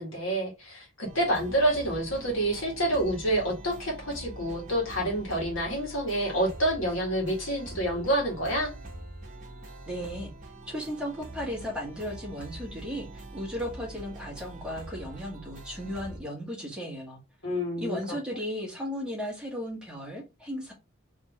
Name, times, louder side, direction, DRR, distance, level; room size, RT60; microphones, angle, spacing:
voice 1, 0.0-8.7 17.4-18.2, right 1 dB, 70° left, 1.7 m, -28 dB
sound 1, 1.0-16.2, right 1 dB, 40° right, 1.0 m, -44 dB
voice 2, 9.9-10.3 10.7-17.2 17.8-20.7, equal, 5° right, 1.4 m, -35 dB
3.6 x 3.1 x 3.4 m
head